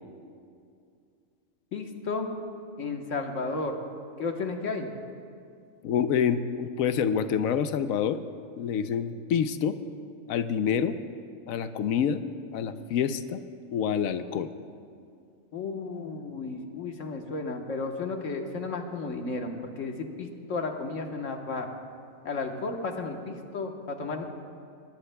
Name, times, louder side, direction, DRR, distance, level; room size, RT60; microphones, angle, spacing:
voice 1, 1.7-2.3 2.8-3.7 4.2-4.9 15.5-21.7 22.2-24.2, left 3 dB, 70° left, 3 dB, 1.5 m, -33 dB
voice 2, 5.8-8.2 8.6-9.8 10.3-11.0 11.5-12.2 12.5-13.4 13.7-14.5, left 7 dB, 90° left, 11 dB, 1.0 m, -27 dB
21.0 x 19.5 x 2.2 m, 2.4 s
omnidirectional pair, 1.4 m